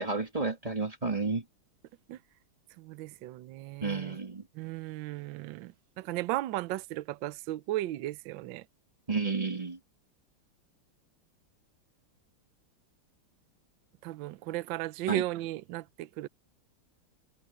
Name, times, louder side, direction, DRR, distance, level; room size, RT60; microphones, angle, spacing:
voice 1, 0.0-1.4 3.8-4.4 9.1-9.8 15.1-15.2, right 4 dB, 20° right, 1.7 m, -31 dB
voice 2, 2.8-4.2 4.5-8.6 14.0-16.3, right 15 dB, 70° right, 1.3 m, -35 dB
omnidirectional pair, 2.4 m